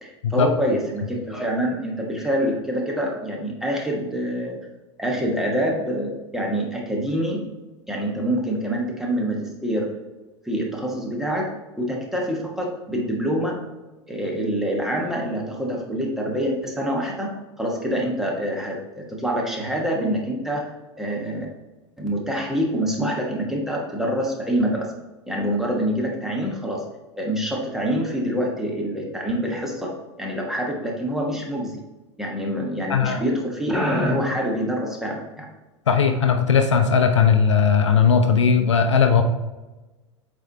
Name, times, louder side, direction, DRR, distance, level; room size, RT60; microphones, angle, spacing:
voice 1, 0.0-4.6 5.0-7.4 7.9-9.9 10.4-11.5 11.7-13.6 14.1-17.3 17.6-20.7 21.0-21.5 22.0-24.9 25.3-26.8 27.2-29.9 30.2-31.8 32.2-35.5, equal, ahead, -2 dB, 1.4 m, -26 dB
voice 2, 32.9-33.2 35.9-39.2, left 6 dB, 70° left, 7 dB, 0.6 m, -18 dB
7.9 x 4.3 x 2.9 m, 1.1 s
figure-of-eight pair, 85°, 16 cm